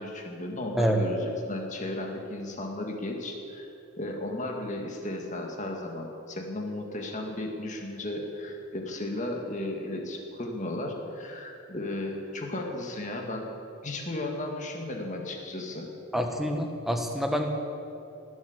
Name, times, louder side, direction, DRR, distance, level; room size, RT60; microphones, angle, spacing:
voice 1, 0.0-3.7 4.0-13.5 13.8-15.9, left 1 dB, 35° left, 1 dB, 1.9 m, -35 dB
voice 2, 16.1-17.5, equal, ahead, 3 dB, 1.2 m, -27 dB
19.5 x 7.8 x 8.0 m, 2.8 s
head